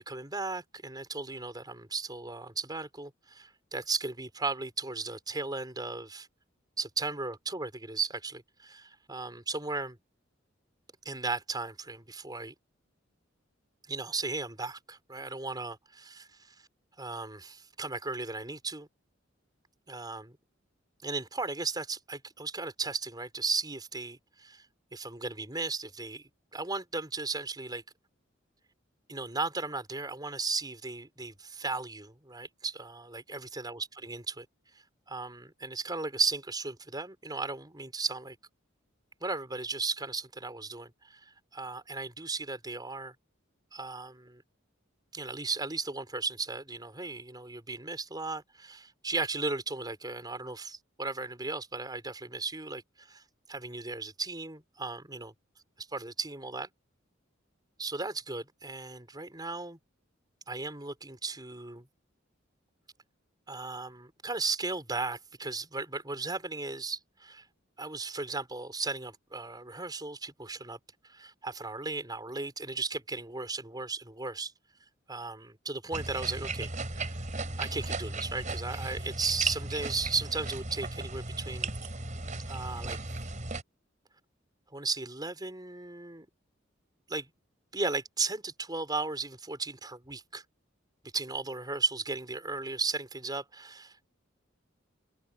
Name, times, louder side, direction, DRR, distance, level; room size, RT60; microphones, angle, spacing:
voice 1, 0.0-6.3 6.8-10.0 11.1-12.5 13.9-16.5 17.0-18.9 19.9-20.4 21.0-24.6 24.9-27.8 29.1-34.5 34.7-38.4 39.2-43.1 43.7-44.4 45.1-53.2 53.5-55.3 55.9-56.7 57.8-59.8 60.5-61.9 63.5-67.4 67.8-70.8 71.0-74.5 75.1-77.2 77.6-81.7 82.5-83.0 84.7-86.3 87.1-87.3 87.7-90.4 91.1-94.1, right 3 dB, 20° right, 5.3 m, -36 dB
sound 1, 75.9-83.6, right 3 dB, 40° right, 3.7 m, -36 dB
head